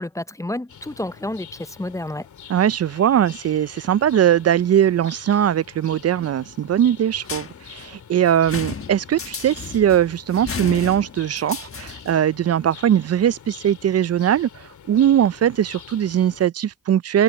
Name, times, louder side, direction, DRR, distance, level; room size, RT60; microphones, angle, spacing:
voice 1, 0.0-2.3, left 1 dB, 10° left, 0.6 m, -30 dB
sound 1, 0.7-16.5, left 8 dB, 80° left, 3.2 m, -45 dB
voice 2, 2.5-17.2, right 10 dB, 60° right, 0.5 m, -20 dB
sound 2, 7.2-12.2, left 6 dB, 50° left, 1.4 m, -34 dB
cardioid pair, 55°, 29 cm